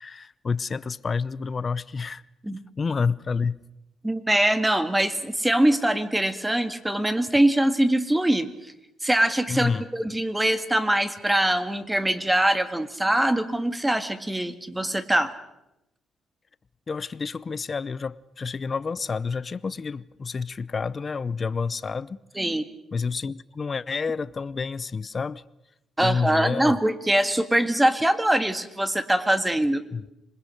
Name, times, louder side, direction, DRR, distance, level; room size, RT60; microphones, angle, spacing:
voice 1, 0.0-2.2 2.8-3.6 9.5-9.9 16.9-22.5 22.9-25.4 26.0-26.8 29.9-30.0, left 5 dB, 35° left, 0.8 m, -29 dB
voice 2, 4.0-8.5 9.0-15.3 22.4-22.6 26.0-29.8, right 1 dB, 10° right, 1.9 m, -23 dB
26.5 x 21.0 x 6.6 m
cardioid pair, 90°, 0 cm